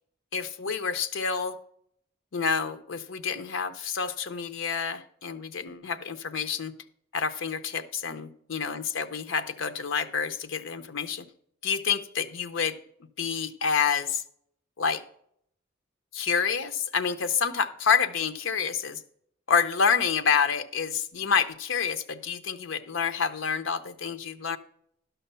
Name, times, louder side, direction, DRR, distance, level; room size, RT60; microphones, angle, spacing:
voice 1, 0.3-1.5 2.3-6.7 7.1-11.2 11.6-12.7 13.2-14.2 14.8-15.0 16.1-19.0 19.5-24.6, left 6 dB, 85° left, 9 dB, 0.7 m, -28 dB
12.0 x 5.7 x 5.5 m, 0.68 s
head